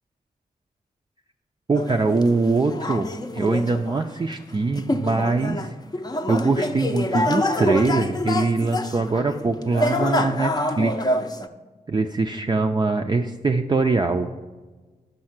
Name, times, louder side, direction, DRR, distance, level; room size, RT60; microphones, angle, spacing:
sound 1, 1.7-11.5, left 1 dB, 25° left, 0.6 m, -26 dB
voice 1, 1.7-3.1 3.3-5.7 6.3-11.0 11.9-14.3, right 3 dB, 30° right, 4 dB, 0.4 m, -22 dB
6.4 x 5.5 x 5.8 m, 1.3 s
cardioid pair, 45°, 16 cm